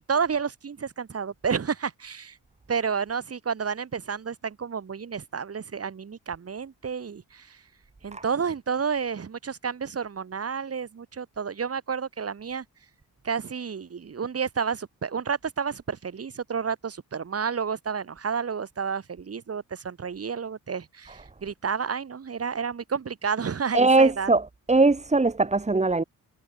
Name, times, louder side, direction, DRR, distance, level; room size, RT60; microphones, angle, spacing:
voice 1, 0.1-2.4 2.7-7.6 8.0-12.6 13.2-24.3, right 6 dB, 45° right, 6.9 m, -30 dB
voice 2, 23.7-26.0, right 3 dB, 20° right, 3.6 m, -21 dB
wide cardioid pair, 130°, 33 cm